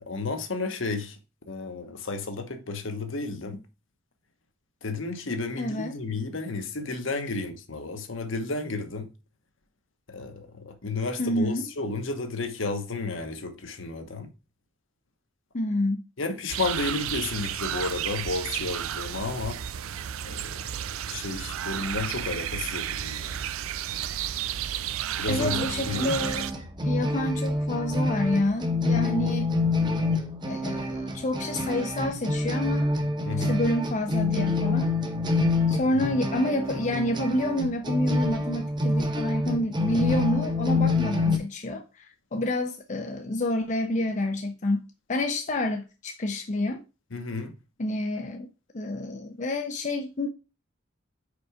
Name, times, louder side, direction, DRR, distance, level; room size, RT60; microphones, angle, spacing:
voice 1, 0.1-1.2 1.5-3.6 4.8-9.1 10.1-14.3 16.2-19.6 20.2-20.8 21.1-23.4 25.2-26.3 33.2-33.6 47.1-47.5, left 3 dB, 70° left, 1.1 m, -32 dB
voice 2, 5.6-6.0 11.2-11.7 15.5-16.0 25.3-26.5 26.8-29.5 30.5-32.9 33.4-34.9 35.7-46.8 47.8-48.5 48.7-50.3, left 1 dB, 35° left, 0.5 m, -28 dB
sound 1, 16.5-26.5, right 10 dB, 85° right, 0.4 m, -32 dB
sound 2, 25.3-41.4, left 2 dB, 20° right, 0.8 m, -27 dB
5.1 x 4.5 x 4.9 m
head